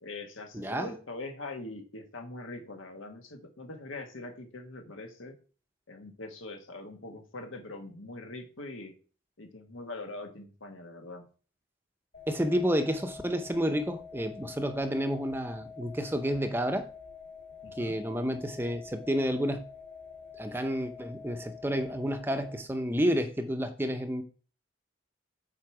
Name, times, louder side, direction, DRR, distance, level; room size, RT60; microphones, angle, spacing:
voice 1, 0.0-5.4 5.9-8.9 9.4-11.2 17.6-18.0, left 2 dB, 90° left, 1.4 m, -42 dB
voice 2, 0.5-0.9 12.3-16.9 17.8-19.6 20.4-24.2, equal, 10° right, 0.6 m, -30 dB
sound 1, 12.1-22.6, left 6 dB, 55° left, 2.7 m, -47 dB
7.6 x 4.6 x 4.7 m
head